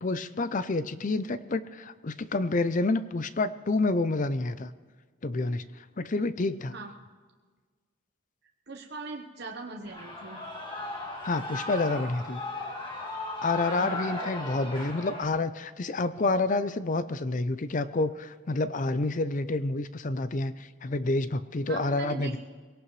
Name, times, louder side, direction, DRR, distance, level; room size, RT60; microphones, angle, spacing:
voice 1, 0.0-4.7 5.2-6.7 11.2-12.4 13.4-22.4, left 2 dB, 40° left, 13 dB, 0.5 m, -29 dB
voice 2, 8.7-10.4 13.8-14.0 21.7-22.4, right 3 dB, 55° right, 1 dB, 1.0 m, -40 dB
Shout / Cheering, 9.8-15.2, left 2 dB, 25° left, 2.0 m, -36 dB
22.0 x 17.5 x 3.2 m, 1.4 s
head